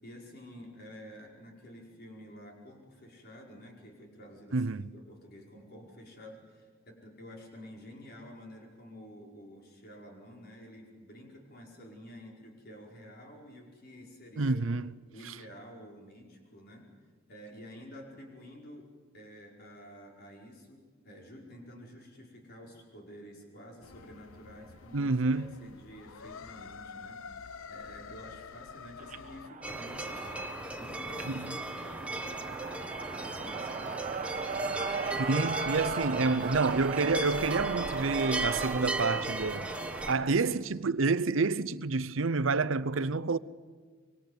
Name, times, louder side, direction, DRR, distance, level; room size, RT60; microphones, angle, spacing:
voice 1, 0.0-14.6 15.1-16.9 17.3-35.5 36.2-36.9 40.0-40.6, equal, 50° left, 5.1 m, -50 dB
voice 2, 4.5-4.8 14.4-14.9 15.2-15.3 24.9-25.5 31.2-31.5 35.2-39.7 40.1-43.4, right 3 dB, 70° right, 0.7 m, -28 dB
sound 1, 23.8-29.5, left 5 dB, 80° left, 0.7 m, -48 dB
sound 2, 29.0-40.4, right 5 dB, 40° right, 1.2 m, -37 dB
sound 3, 29.6-40.1, right 2 dB, 5° right, 1.5 m, -37 dB
25.5 x 23.0 x 8.0 m
head